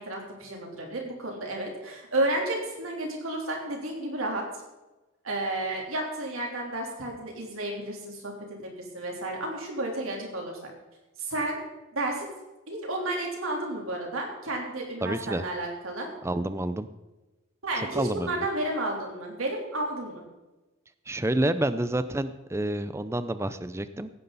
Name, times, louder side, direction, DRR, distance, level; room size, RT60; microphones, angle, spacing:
voice 1, 0.0-4.5 5.2-10.6 11.2-11.6 11.9-12.3 12.7-16.1 17.6-20.2, right 1 dB, 90° right, 0 dB, 3.5 m, -32 dB
voice 2, 15.0-15.5 16.2-16.9 17.9-18.4 21.1-24.1, right 1 dB, 15° right, 12 dB, 0.5 m, -28 dB
16.5 x 9.9 x 4.1 m, 1.1 s
head